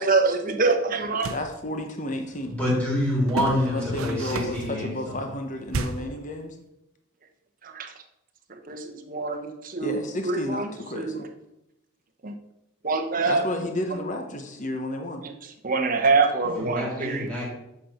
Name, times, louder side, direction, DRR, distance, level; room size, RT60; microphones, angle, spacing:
voice 1, 0.0-1.3 7.6-7.9 8.5-11.2 12.2-12.3 12.8-13.5 13.9-14.0 15.2-15.3 15.6-17.3, right 4 dB, 40° right, 5 dB, 1.0 m, -25 dB
sound 1, 1.0-1.5 3.3-4.7 5.7-6.2, right 3 dB, 80° right, 0.7 m, -32 dB
voice 2, 1.3-2.6 3.5-6.6 9.8-11.3 13.2-15.2, left 1 dB, 35° left, 4 dB, 1.0 m, -32 dB
voice 3, 2.5-5.2 16.6-17.5, equal, 5° left, -6 dB, 3.5 m, -27 dB
8.3 x 5.8 x 5.8 m, 0.87 s
head